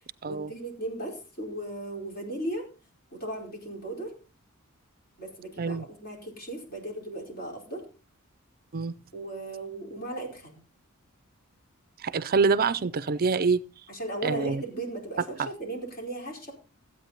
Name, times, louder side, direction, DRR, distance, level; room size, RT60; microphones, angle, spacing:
voice 1, 0.2-2.7 3.1-4.1 5.2-7.9 9.1-10.6 13.9-16.5, right 2 dB, 45° left, 4.6 m, -36 dB
voice 2, 12.0-13.6 14.2-14.6 15.4-15.5, right 4 dB, 45° right, 0.5 m, -25 dB
14.0 x 8.9 x 4.0 m
head